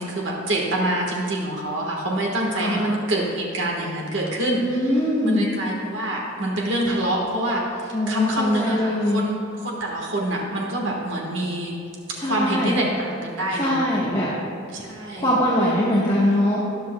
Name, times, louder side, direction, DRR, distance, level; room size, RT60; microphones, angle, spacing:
voice 1, 0.0-4.9 5.2-11.7 12.2-13.8 14.7-15.3, right 1 dB, 70° right, -1 dB, 1.4 m, -26 dB
voice 2, 2.5-2.9 4.6-5.5 7.9-9.2 12.1-12.8 13.6-14.4 15.2-16.6, left 1 dB, 20° left, -7 dB, 1.2 m, -22 dB
13.0 x 10.0 x 2.2 m, 2.4 s
head